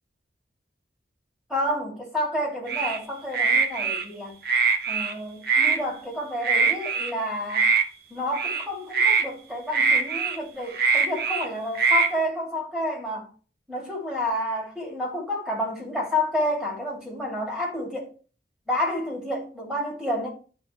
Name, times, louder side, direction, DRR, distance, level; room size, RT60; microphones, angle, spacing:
voice 1, 1.5-4.4 4.9-7.7 8.1-13.3 13.7-18.1 18.7-20.3, left 1 dB, 5° right, 2.3 m, -29 dB
sound 1, 2.7-3.0 3.3-4.0 4.4-5.1 5.4-5.8 6.4-7.1 7.5-7.8 8.3-8.6 8.9-9.3 9.7-10.4 10.7-11.5 11.7-12.1, right 5 dB, 55° right, 0.9 m, -22 dB
11.5 x 4.0 x 2.9 m
head